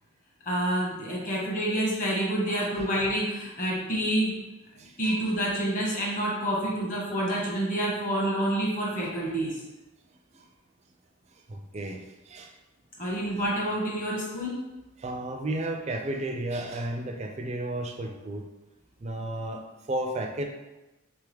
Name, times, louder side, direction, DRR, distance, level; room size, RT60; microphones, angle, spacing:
voice 1, 0.4-4.4 5.0-9.6 13.0-14.7, right 1 dB, 35° left, -4 dB, 1.2 m, -28 dB
voice 2, 4.8-5.2 10.3-10.5 11.5-12.5 15.0-18.4 19.0-20.4, right 1 dB, 30° right, 3 dB, 0.3 m, -33 dB
3.7 x 3.5 x 3.3 m, 1.0 s
head